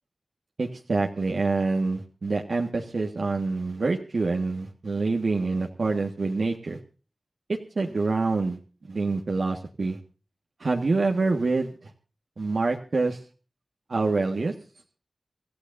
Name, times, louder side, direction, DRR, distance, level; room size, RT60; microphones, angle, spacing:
voice 1, 0.6-6.8 7.5-8.6 8.8-10.0 10.6-11.9 12.4-13.2 13.9-14.5, right 3 dB, 65° right, 1 dB, 1.6 m, -26 dB
26.5 x 15.0 x 2.7 m, 0.36 s
wide cardioid pair, 75°, 0 cm